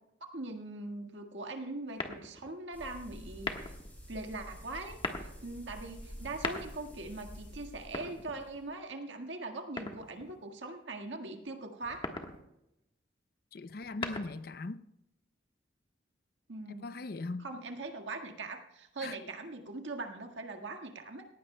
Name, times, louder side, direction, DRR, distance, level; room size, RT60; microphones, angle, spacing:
voice 1, 0.2-3.7 4.1-12.1 16.5-17.0 17.4-21.3, right 2 dB, 85° right, 1.7 m, -41 dB
sound 1, 1.9-2.6 3.3-3.9 4.8-5.3 6.2-7.0 7.8-8.7 9.8-10.4 11.8-12.4 13.7-14.6, left 3 dB, 30° left, 1.3 m, -39 dB
sound 2, 2.7-8.7, equal, 10° left, 5.1 m, -49 dB
voice 2, 13.5-14.8 16.8-17.5 19.0-19.2, left 3 dB, 55° left, 0.5 m, -39 dB
18.5 x 15.5 x 2.2 m
head